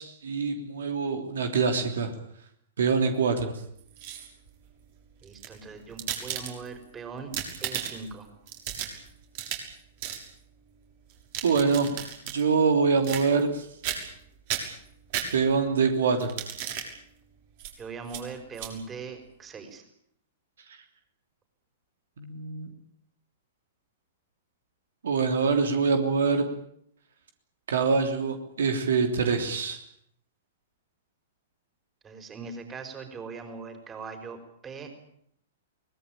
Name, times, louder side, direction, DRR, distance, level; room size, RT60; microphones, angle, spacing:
voice 1, 0.0-2.1 2.8-3.5 11.4-11.9 12.3-13.7 15.3-16.5 20.7-20.8 22.2-22.7 25.0-26.5 27.7-29.8, right 5 dB, 70° right, 6 dB, 3.1 m, -25 dB
sound 1, 3.8-4.5 5.2-6.8 7.2-8.1 8.5-9.7 10.0-10.2 11.1-12.4 13.0-13.5 13.8-14.2 14.5-15.7 16.2-16.9 17.6-17.7 18.1-18.2 18.5-18.7, right 9 dB, 50° right, 6.5 m, -35 dB
voice 2, 5.2-7.3 7.6-8.3 17.8-19.8 32.0-34.9, right 5 dB, 20° right, 7 dB, 5.5 m, -40 dB
24.0 x 20.0 x 9.0 m, 0.71 s
figure-of-eight pair, 110°, 0 cm